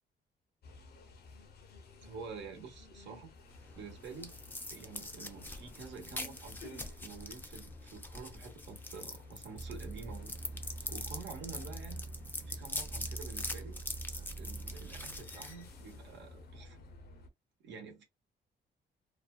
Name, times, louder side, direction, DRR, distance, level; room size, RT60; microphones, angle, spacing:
sound 1, 0.6-17.3, left 3 dB, 55° left, 0.6 m, -54 dB
voice 1, 2.0-3.3 3.8-4.3 4.7-10.3 10.8-12.0 12.5-13.8 14.4-16.8 17.6-18.0, right 5 dB, 75° right, 1.0 m, -48 dB
sound 2, 3.5-16.2, left 2 dB, 10° left, 0.5 m, -44 dB
sound 3, 9.5-15.2, right 2 dB, 45° right, 0.4 m, -44 dB
2.6 x 2.2 x 2.2 m
cardioid pair, 95°, 19 cm